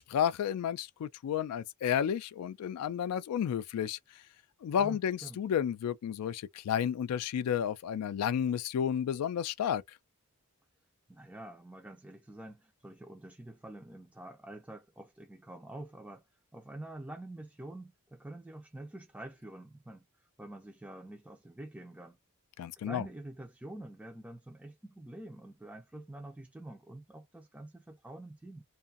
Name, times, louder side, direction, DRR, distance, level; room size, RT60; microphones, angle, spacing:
voice 1, 0.0-4.0 4.6-9.8 22.6-23.0, left 8 dB, 85° left, 0.3 m, -31 dB
voice 2, 4.8-5.4 11.1-16.2 16.5-22.2 22.8-28.6, right 1 dB, 5° right, 0.3 m, -47 dB
2.6 x 2.4 x 2.4 m
head